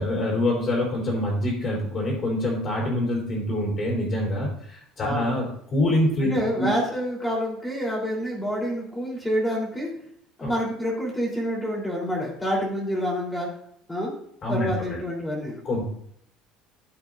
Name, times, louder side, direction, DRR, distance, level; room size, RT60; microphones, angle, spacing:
voice 1, 0.0-6.7 10.4-10.5 14.4-15.0 15.6-15.8, left 1 dB, 35° left, -4 dB, 4.0 m, -25 dB
voice 2, 6.2-9.9 10.4-13.5 13.9-14.1 14.5-15.7, equal, 10° left, -3 dB, 3.6 m, -27 dB
13.0 x 8.0 x 2.6 m, 0.68 s
cardioid pair, 130°, 0 cm